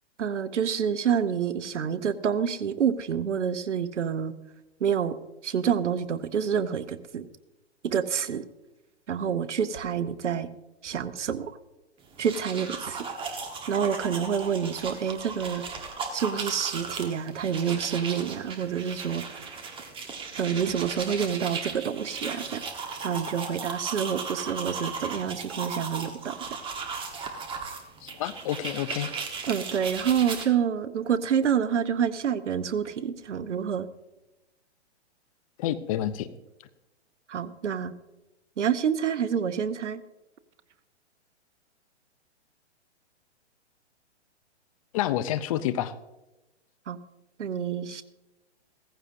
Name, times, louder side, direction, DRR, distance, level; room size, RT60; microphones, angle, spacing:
voice 1, 0.2-4.3 4.8-5.2 5.4-7.2 7.8-8.4 9.1-10.5 10.8-11.5 12.2-13.1 13.7-15.6 16.1-19.2 20.4-22.6 23.0-26.4 29.5-33.9 37.3-37.9 38.6-40.0 46.9-47.0 47.4-48.0, right 8 dB, 80° right, 13 dB, 0.9 m, -28 dB
sound 1, 12.1-30.5, right 4 dB, 15° right, 1.4 m, -36 dB
voice 2, 28.0-29.1 35.6-36.3 44.9-45.9, left 12 dB, 30° left, 13 dB, 0.5 m, -29 dB
16.5 x 15.0 x 2.7 m, 1.0 s
hypercardioid pair, 130°, 35 cm